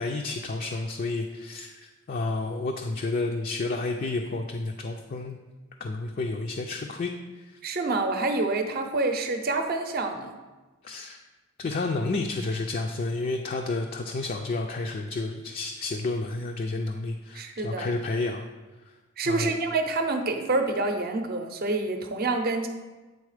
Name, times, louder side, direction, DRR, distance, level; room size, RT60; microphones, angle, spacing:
voice 1, 0.0-5.4 5.8-7.1 10.8-11.2 11.6-18.4 19.3-19.5, left 3 dB, 45° left, 2 dB, 0.4 m, -30 dB
voice 2, 7.6-10.4 17.3-17.9 19.2-22.7, right 3 dB, 45° right, 5 dB, 0.7 m, -27 dB
8.3 x 3.9 x 4.9 m, 1.2 s
head